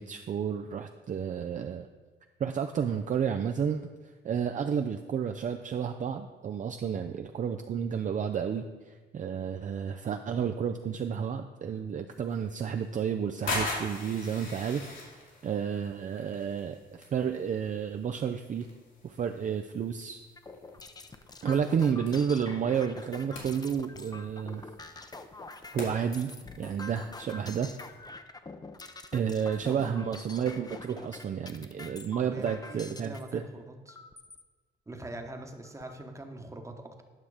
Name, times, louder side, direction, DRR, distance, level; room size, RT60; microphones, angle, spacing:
voice 1, 0.0-1.9 2.4-3.8 4.2-18.7 19.0-20.2 21.4-24.7 25.7-27.7 29.1-33.4, right 7 dB, 40° right, 6 dB, 0.5 m, -31 dB
sound 1, 12.1-28.0, left 2 dB, 75° left, 2.5 m, -43 dB
sound 2, 20.4-33.2 33.9-34.4 35.0-35.1 35.4-36.0, left 3 dB, 20° left, 0.6 m, -46 dB
voice 2, 32.2-34.0 34.9-37.0, right 1 dB, 15° right, 4 dB, 1.1 m, -43 dB
9.3 x 5.8 x 4.9 m, 1.4 s
cardioid pair, 90°, 20 cm